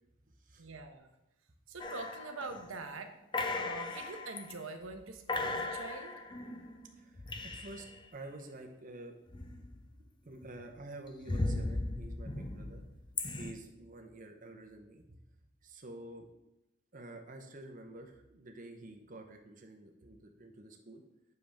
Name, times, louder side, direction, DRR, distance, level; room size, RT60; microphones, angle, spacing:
voice 1, 0.6-1.1 1.7-3.1 3.6-6.1, right 3 dB, 80° right, 6 dB, 0.9 m, -44 dB
sound 1, 1.8-2.8 3.3-4.5 4.9-5.0 5.3-8.0 9.3-10.0 10.4-13.5, left 2 dB, 25° left, 0.6 m, -38 dB
voice 2, 6.9-9.2 10.2-12.8 13.4-15.2 15.6-16.3 16.9-21.0, right 2 dB, 40° right, 4 dB, 0.8 m, -49 dB
7.5 x 6.6 x 3.5 m, 0.91 s
head